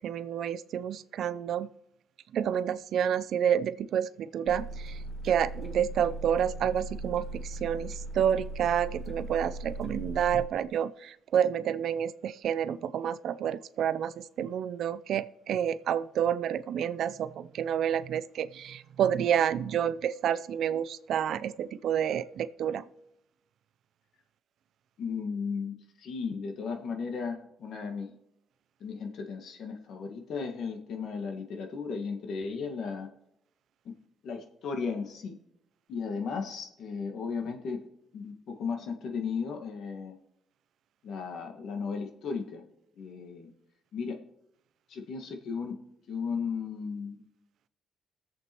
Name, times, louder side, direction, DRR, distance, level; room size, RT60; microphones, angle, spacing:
voice 1, 0.0-1.7 2.3-5.0 5.2-22.8, right 9 dB, 70° right, 14 dB, 0.5 m, -29 dB
sound 1, 4.5-10.5, right 2 dB, 30° left, 1.4 m, -39 dB
voice 2, 25.0-28.1 28.8-33.1 33.8-33.9 34.2-35.4 35.9-37.8 38.1-40.2 41.0-42.7 43.0-43.5 43.9-44.2 44.9-45.8 46.1-47.2, left 5 dB, 70° left, 4 dB, 1.6 m, -35 dB
21.0 x 7.7 x 3.0 m, 0.89 s
cardioid pair, 90°, 0 cm